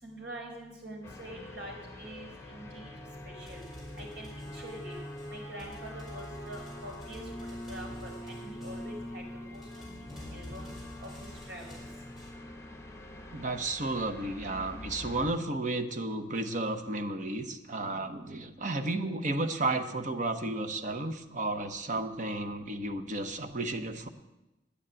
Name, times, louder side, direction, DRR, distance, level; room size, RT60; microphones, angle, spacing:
voice 1, 0.0-2.9 3.2-3.6 4.0-4.9 5.3-7.3 7.7-10.7 11.0-11.1 11.5-11.8, right 1 dB, 85° right, -1 dB, 4.6 m, -45 dB
sound 1, 1.0-15.3, left 1 dB, 15° left, 1.2 m, -44 dB
sound 2, 3.4-12.3, left 1 dB, ahead, 4.8 m, -49 dB
voice 2, 13.3-24.1, right 2 dB, 45° right, 8 dB, 1.0 m, -33 dB
9.9 x 9.5 x 8.8 m, 0.98 s
head